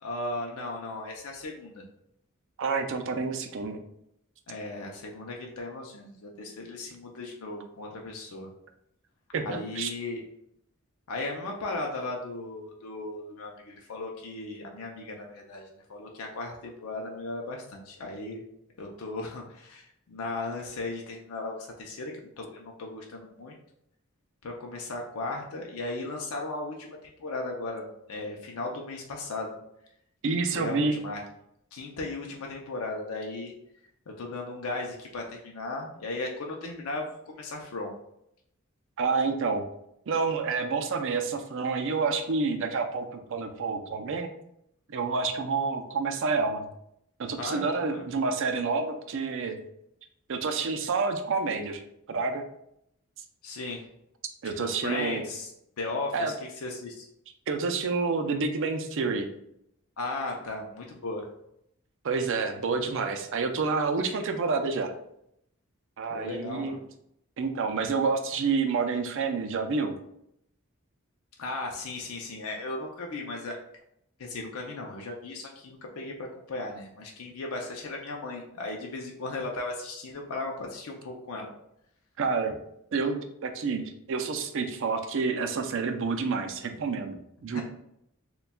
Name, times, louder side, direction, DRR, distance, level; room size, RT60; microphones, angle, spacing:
voice 1, 0.0-1.8 4.5-8.5 9.4-10.2 11.1-18.4 18.8-23.5 24.4-29.6 30.5-31.2 31.7-33.5 34.2-37.9 47.4-48.0 53.4-53.9 54.4-55.5 55.8-57.1 60.0-61.3 66.1-66.8 71.4-73.6 74.2-81.5 87.5-87.6, left 2 dB, 85° left, 0 dB, 0.6 m, -36 dB
voice 2, 2.6-3.8 9.3-9.9 30.2-31.0 39.0-39.6 40.1-44.3 44.9-46.6 47.2-49.6 50.3-51.8 52.1-52.4 54.4-55.2 56.1-56.3 57.5-59.3 62.0-64.9 66.0-66.8 67.4-69.9 82.2-82.6 82.9-87.6, right 4 dB, 65° right, 6 dB, 0.5 m, -28 dB
6.7 x 2.3 x 2.2 m, 0.77 s
head